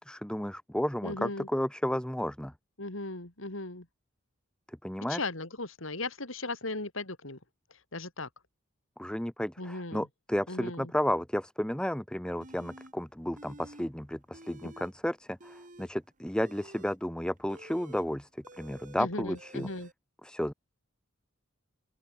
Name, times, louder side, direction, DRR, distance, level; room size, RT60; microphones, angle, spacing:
voice 1, 0.0-2.5 4.8-5.2 9.0-18.3 18.6-19.7 20.2-20.5, equal, 5° left, 1.0 m, -32 dB
voice 2, 1.0-1.5 2.8-3.9 5.1-7.4 7.7-8.3 9.6-10.1 10.5-10.9 19.0-19.9, left 2 dB, 70° left, 4.2 m, -37 dB
sound 1, 12.4-12.9 13.3-13.9 14.2-14.9 15.3-19.9, right 1 dB, 40° right, 6.9 m, -51 dB
open air
head